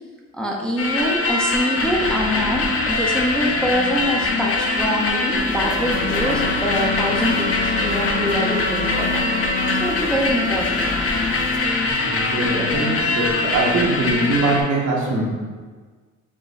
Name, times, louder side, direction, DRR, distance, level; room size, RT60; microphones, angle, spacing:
voice 1, 0.3-9.2 9.8-10.8, equal, 5° left, -2 dB, 0.6 m, -24 dB
sound 1, 0.8-14.6, left 3 dB, 45° left, 0.7 m, -22 dB
sound 2, 5.4-11.6, right 1 dB, 30° right, 0.8 m, -34 dB
sound 3, 5.8-9.9, left 2 dB, 20° left, 1.0 m, -28 dB
voice 2, 12.0-15.2, right 2 dB, 75° right, -3 dB, 1.1 m, -22 dB
4.9 x 2.2 x 4.0 m, 1.5 s
cardioid pair, 90°, 30 cm